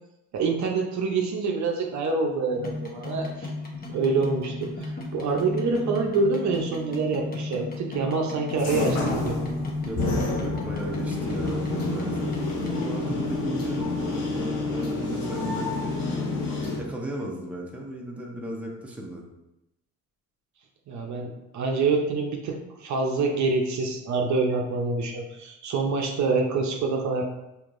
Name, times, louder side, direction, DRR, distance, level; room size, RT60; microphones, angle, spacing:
voice 1, 0.3-3.5 3.9-9.4 20.9-27.2, right 4 dB, 50° right, 1 dB, 0.7 m, -26 dB
sound 1, 2.5-12.9, left 2 dB, 25° left, 0.9 m, -34 dB
Inside the elevator, 8.6-16.8, left 3 dB, 90° left, 0.9 m, -29 dB
voice 2, 9.8-12.4 12.7-16.0 16.7-19.2, right 1 dB, 5° right, -2 dB, 0.8 m, -35 dB
4.5 x 2.9 x 2.5 m, 0.92 s
supercardioid pair, 70°, 37 cm